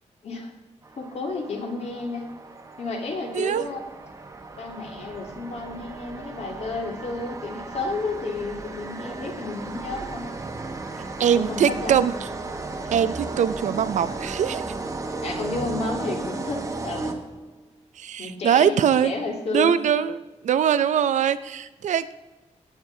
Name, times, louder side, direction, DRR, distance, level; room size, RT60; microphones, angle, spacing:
sound 1, 0.8-17.6, right 3 dB, 25° right, 1.1 m, -35 dB
voice 1, 1.0-2.3 2.8-3.8 4.6-10.3 11.2-12.0 15.2-17.1 18.2-19.7, left 3 dB, 60° left, 1 dB, 2.4 m, -31 dB
voice 2, 3.3-3.7 11.2-12.1 12.9-14.6 18.0-19.1 19.5-22.1, right 8 dB, 85° right, 14 dB, 0.5 m, -22 dB
17.0 x 8.1 x 3.8 m, 1.1 s
wide cardioid pair, 175°, 12 cm